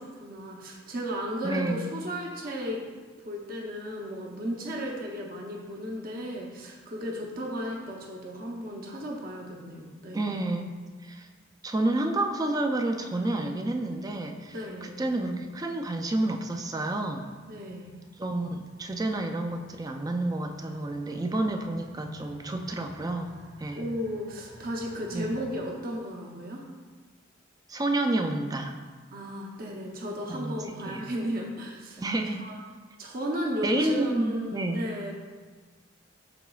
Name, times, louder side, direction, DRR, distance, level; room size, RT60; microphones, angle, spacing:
voice 1, 0.0-2.8 3.2-10.4 14.5-15.0 17.5-17.9 23.8-26.6 29.1-32.0 32.4-32.6 33.0-35.1, equal, 45° right, -1 dB, 0.8 m, -34 dB
voice 2, 1.4-1.9 10.1-11.3 11.6-17.3 18.2-23.3 23.6-23.8 25.1-25.4 27.7-28.7 30.3-31.1 32.0-32.4 33.6-34.9, right 2 dB, 20° right, 4 dB, 0.4 m, -30 dB
sound 1, 11.2-25.5, equal, 70° right, 1.2 m, -56 dB
12.0 x 4.0 x 2.3 m, 1.4 s
head